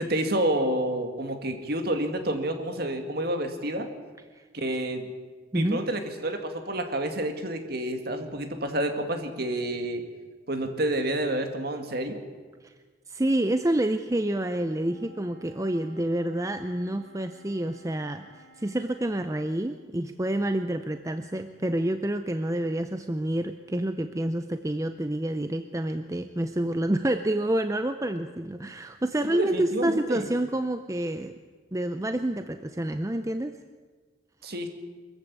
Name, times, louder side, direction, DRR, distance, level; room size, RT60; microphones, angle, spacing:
voice 1, 0.0-3.9 4.5-5.1 5.5-10.0 10.5-12.2 29.2-30.3 34.4-34.7, right 1 dB, 50° right, 6 dB, 2.2 m, -29 dB
voice 2, 13.1-31.3 31.7-33.6, right 1 dB, 15° right, 9 dB, 0.5 m, -28 dB
Wind instrument woodwind instrument, 14.7-19.2, right 1 dB, 85° right, 5.9 m, -54 dB
23.0 x 14.5 x 8.4 m, 1.4 s
head